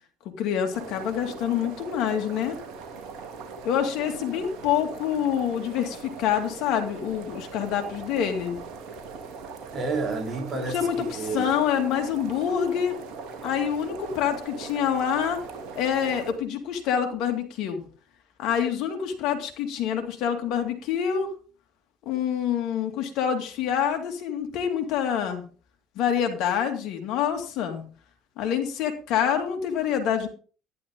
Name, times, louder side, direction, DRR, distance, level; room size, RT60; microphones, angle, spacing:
voice 1, 0.4-2.6 3.6-8.6 10.7-13.0 13.4-15.4 15.8-17.8 18.4-21.3 22.1-25.4 26.0-27.8 28.4-30.3, left 8 dB, 65° left, 4 dB, 2.3 m, -26 dB
sound 1, 0.7-16.3, right 5 dB, 65° right, 2.6 m, -40 dB
voice 2, 9.7-11.6, right 3 dB, 40° right, 3 dB, 3.4 m, -30 dB
12.0 x 11.0 x 3.7 m, 0.39 s
hypercardioid pair, 65°, 0 cm